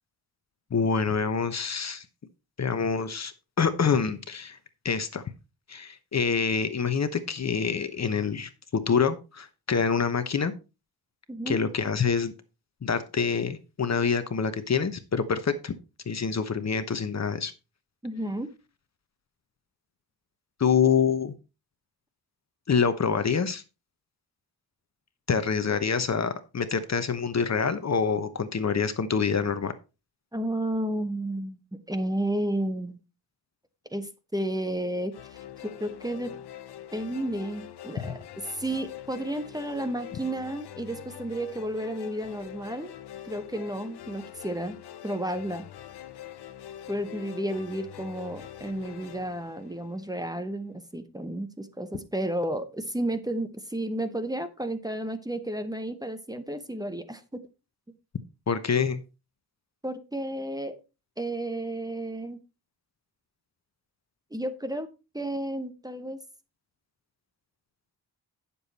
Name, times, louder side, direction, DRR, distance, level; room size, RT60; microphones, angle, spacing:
voice 1, 0.7-2.0 2.6-4.6 4.8-5.2 5.7-10.5 11.5-12.3 12.8-15.7 16.1-17.5 20.6-21.3 22.7-23.6 25.3-29.7 38.0-38.1 58.5-59.0, left 6 dB, 40° left, 11 dB, 1.0 m, -26 dB
voice 2, 11.3-11.6 18.0-18.5 30.3-33.0 33.9-36.3 36.9-38.2 38.5-42.9 43.2-44.8 45.0-45.6 46.9-57.4 59.8-60.7 61.2-62.4 64.3-64.9 65.1-66.2, right 1 dB, 10° right, 9 dB, 1.0 m, -32 dB
sound 1, 35.1-50.4, left 11 dB, 90° left, 0.9 m, -44 dB
9.8 x 7.1 x 4.2 m, 0.29 s
wide cardioid pair, 125°, 39 cm